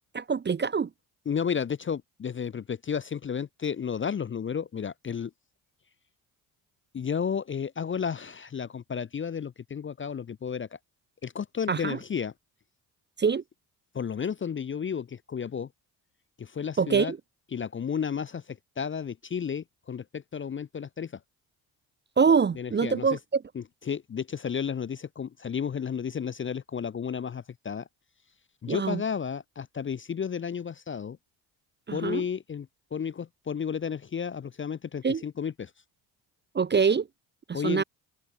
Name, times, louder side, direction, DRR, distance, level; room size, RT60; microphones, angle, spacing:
voice 1, 0.1-0.9 11.7-12.0 13.2-13.4 16.8-17.2 22.2-23.4 28.7-29.0 31.9-32.2 35.0-35.2 36.5-37.1 37.5-37.8, right 5 dB, 20° right, 0.6 m, -24 dB
voice 2, 1.3-5.3 6.9-10.7 11.2-12.3 13.9-15.7 16.4-17.1 17.5-21.1 22.5-23.2 23.5-27.9 28.6-31.2 31.9-35.7 37.5-37.8, left 7 dB, 25° left, 0.6 m, -32 dB
hypercardioid pair, 55°, 49 cm